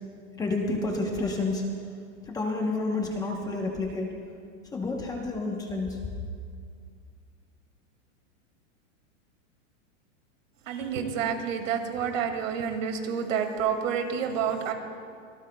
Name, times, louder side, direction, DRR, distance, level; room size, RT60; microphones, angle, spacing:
voice 1, 0.3-1.6 2.2-4.1 4.7-6.0, left 3 dB, 10° left, 0 dB, 0.9 m, -29 dB
voice 2, 10.7-14.7, right 7 dB, 75° right, 4 dB, 2.2 m, -29 dB
25.0 x 18.0 x 2.2 m, 2.2 s
supercardioid pair, 165°, 39 cm